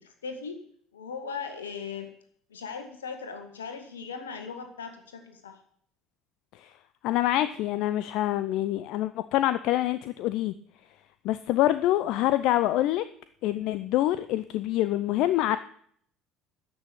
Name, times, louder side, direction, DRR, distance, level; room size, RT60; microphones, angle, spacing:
voice 1, 0.0-0.6 0.9-2.1 2.5-5.6, left 5 dB, 80° left, 6 dB, 1.9 m, -38 dB
voice 2, 7.0-10.5 11.2-13.0 13.4-15.6, left 14 dB, 60° left, 14 dB, 0.5 m, -26 dB
13.5 x 6.2 x 8.7 m, 0.62 s
figure-of-eight pair, 60°, 0 cm